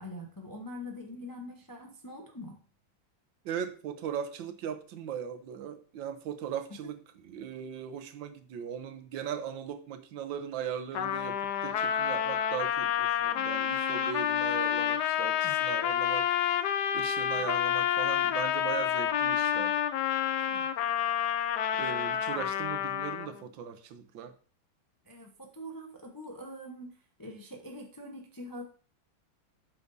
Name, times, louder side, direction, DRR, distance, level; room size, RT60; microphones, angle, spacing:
voice 1, 0.0-2.6 6.8-6.9 15.4-15.6 17.2-17.5 20.4-20.7 25.1-26.9 27.2-28.6, left 1 dB, 25° left, 0.4 m, -44 dB
voice 2, 3.4-19.7 21.8-24.3, right 8 dB, 80° right, 1.5 m, -39 dB
Trumpet, 10.9-23.4, left 9 dB, 70° left, 1.0 m, -29 dB
8.6 x 6.0 x 2.6 m
omnidirectional pair, 2.1 m